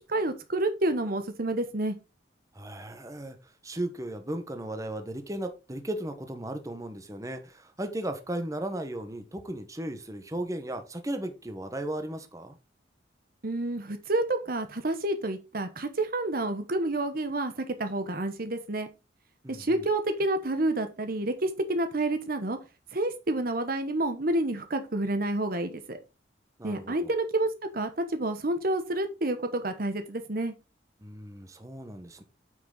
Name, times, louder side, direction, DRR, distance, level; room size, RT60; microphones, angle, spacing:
voice 1, 0.1-2.0 13.4-18.9 19.5-22.6 22.9-26.0 26.6-30.5, right 2 dB, 50° right, 8 dB, 1.0 m, -29 dB
voice 2, 2.5-12.6 19.4-19.8 26.6-27.1 31.0-32.2, right 1 dB, 20° right, 7 dB, 1.2 m, -36 dB
9.3 x 5.9 x 4.0 m, 0.28 s
head